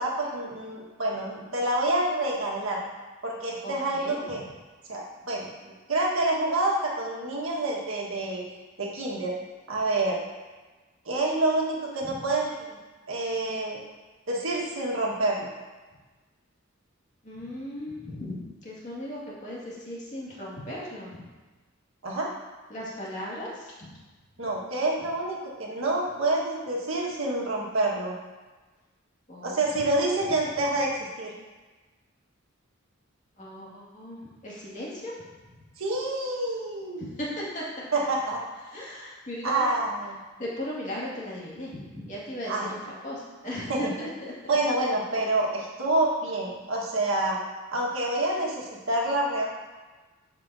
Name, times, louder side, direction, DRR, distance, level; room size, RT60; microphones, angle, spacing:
voice 1, 0.0-2.8 3.2-4.4 4.9-8.4 8.8-9.3 9.7-10.2 11.0-12.7 13.1-13.8 14.3-15.5 22.0-22.3 24.4-28.1 29.4-31.3 35.8-37.1 37.9-38.4 39.4-40.2 42.5-42.7 43.7-43.9 44.5-47.4 47.7-49.5, right 2 dB, 80° right, -2 dB, 1.5 m, -27 dB
voice 2, 3.6-4.2 12.0-12.2 17.2-18.4 18.6-21.2 22.7-23.5 23.8-23.9 29.3-29.6 33.4-35.1 37.0-37.3 37.5-37.9 38.7-39.7 40.4-42.5 43.0-44.3, left 1 dB, 35° left, -6 dB, 2.1 m, -37 dB
11.0 x 5.1 x 2.7 m, 1.3 s
head